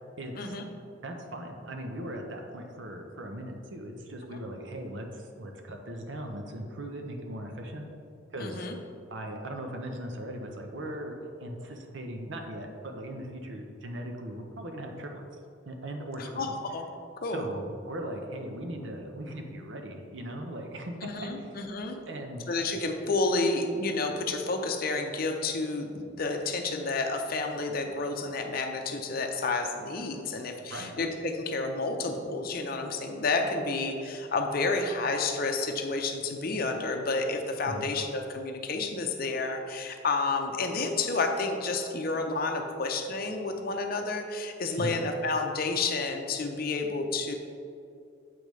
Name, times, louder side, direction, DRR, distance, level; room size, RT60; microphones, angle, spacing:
voice 1, 0.2-0.5 1.0-7.9 8.3-8.7 9.1-15.3 15.7-16.5 17.3-21.6 22.1-22.4 30.7-30.9 37.7-37.9 44.8-44.9, right 1 dB, 65° right, 3 dB, 0.7 m, -39 dB
voice 2, 8.4-8.7 16.2-16.8 17.2-17.4 21.0-22.0 22.5-47.3, left 3 dB, 50° left, 4 dB, 0.6 m, -30 dB
7.6 x 5.2 x 3.2 m, 2.5 s
head